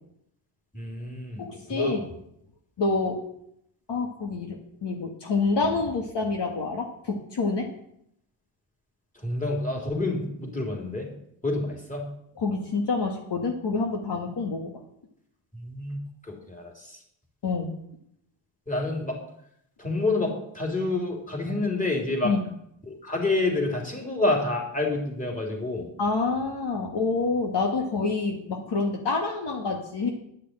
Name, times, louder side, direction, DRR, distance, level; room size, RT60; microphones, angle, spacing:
voice 1, 0.7-2.1 9.2-11.1 11.4-12.1 15.5-17.0 18.7-19.2 19.8-22.4 22.9-25.9, left 2 dB, 15° left, 0 dB, 3.6 m, -28 dB
voice 2, 1.4-2.0 2.8-3.2 3.9-7.7 12.4-14.7 17.4-17.7 22.2-22.4 26.0-30.1, left 3 dB, 60° left, 2 dB, 1.8 m, -27 dB
10.5 x 6.7 x 8.9 m, 0.74 s
cardioid pair, 90°, 47 cm